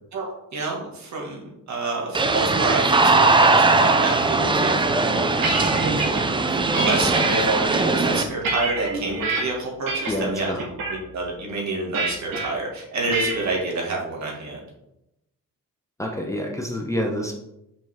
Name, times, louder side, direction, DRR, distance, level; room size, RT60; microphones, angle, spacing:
voice 1, 0.1-6.2 6.5-10.5 10.9-14.6, right 3 dB, 55° right, -1 dB, 2.0 m, -28 dB
sound 1, 2.1-8.2, right 3 dB, 15° right, 0.4 m, -20 dB
sound 2, 5.0-6.2 6.7-7.3 7.9-9.4 9.9-10.3 10.6-11.0 11.9-12.5 13.1-13.5, right 3 dB, 80° right, 2.0 m, -27 dB
voice 2, 10.1-10.6 16.0-17.3, left 1 dB, 10° left, 0 dB, 0.8 m, -27 dB
6.1 x 5.3 x 3.6 m, 0.86 s
cardioid pair, 150°, 34 cm